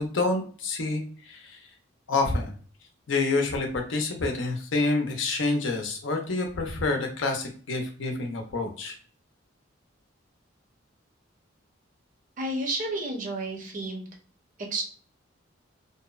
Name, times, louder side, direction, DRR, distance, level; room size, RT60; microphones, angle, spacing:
voice 1, 0.0-1.6 2.1-2.5 3.1-8.9, left 3 dB, 70° left, 3 dB, 0.6 m, -28 dB
voice 2, 12.4-14.1 14.6-14.8, right 2 dB, 40° right, 2 dB, 0.6 m, -31 dB
2.6 x 2.0 x 2.4 m, 0.42 s
head